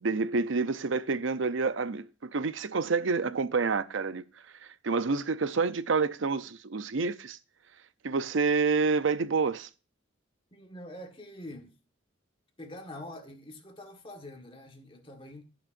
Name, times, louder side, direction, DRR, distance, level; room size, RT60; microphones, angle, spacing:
voice 1, 0.0-4.2 4.8-7.4 8.0-9.7, right 4 dB, 75° right, 0.6 m, -28 dB
voice 2, 10.5-11.8 12.6-15.4, left 1 dB, 25° left, 1.5 m, -45 dB
17.5 x 6.0 x 2.6 m
head